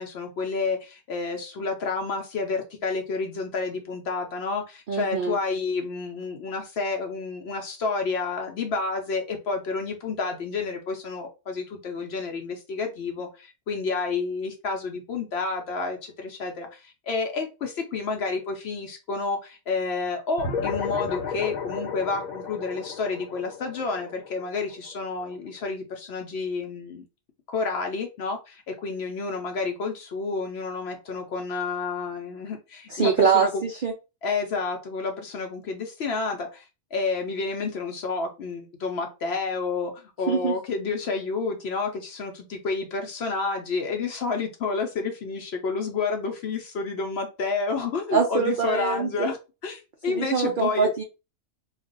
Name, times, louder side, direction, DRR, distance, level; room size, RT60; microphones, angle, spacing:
voice 1, 0.0-27.0 27.5-33.6 34.2-49.4 49.6-50.9, left 4 dB, 60° left, 4 dB, 0.7 m, -30 dB
voice 2, 4.9-5.4 32.9-33.9 40.3-40.5 48.1-49.3 50.1-51.0, right 5 dB, 65° right, 1 dB, 0.5 m, -24 dB
sound 1, 20.4-25.2, left 5 dB, 80° left, 1.1 m, -33 dB
2.4 x 2.2 x 3.7 m, 0.29 s
omnidirectional pair, 1.4 m